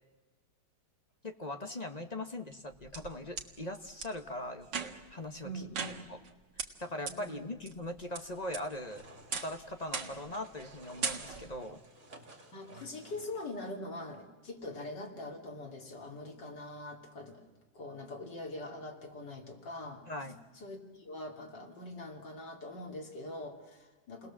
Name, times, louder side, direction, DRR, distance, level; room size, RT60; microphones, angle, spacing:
voice 1, 1.2-5.7 6.1-6.2 6.8-9.0 9.3-11.8 20.1-20.4, left 1 dB, 30° left, 7 dB, 1.1 m, -40 dB
sound 1, 2.5-3.5 4.0-4.1 4.6-5.2 5.7-6.3 6.6-6.7 7.1-7.2 7.7-8.2 8.5-8.9 9.3-9.6 9.9-10.3 10.6-10.7 11.0-11.6, right 5 dB, 90° right, 2.4 m, -38 dB
voice 2, 5.4-6.0 7.1-7.6 12.5-17.4 17.7-24.3, left 1 dB, 90° left, 2 dB, 3.6 m, -43 dB
sound 2, 8.1-13.5, right 2 dB, 50° right, 3.1 m, -55 dB
29.5 x 20.0 x 7.4 m, 1.3 s
omnidirectional pair, 1.9 m